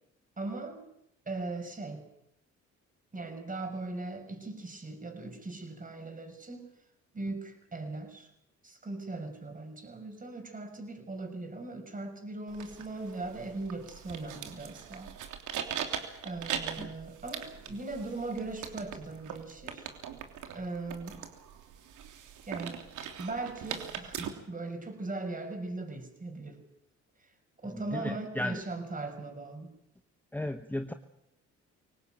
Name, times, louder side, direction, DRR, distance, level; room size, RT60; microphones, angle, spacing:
voice 1, 0.4-0.9 1.3-2.1 3.1-6.7 7.1-8.3 8.6-15.2 16.2-19.9 20.5-21.2 22.5-22.8 23.2-26.6 27.6-29.7, right 2 dB, 25° right, 6 dB, 6.1 m, -39 dB
sound 1, 12.5-24.3, right 8 dB, 80° right, 3.2 m, -41 dB
voice 2, 27.7-28.6 30.3-30.9, left 1 dB, 5° left, 8 dB, 1.2 m, -35 dB
23.0 x 18.5 x 9.0 m, 0.77 s
cardioid pair, 90°, 30 cm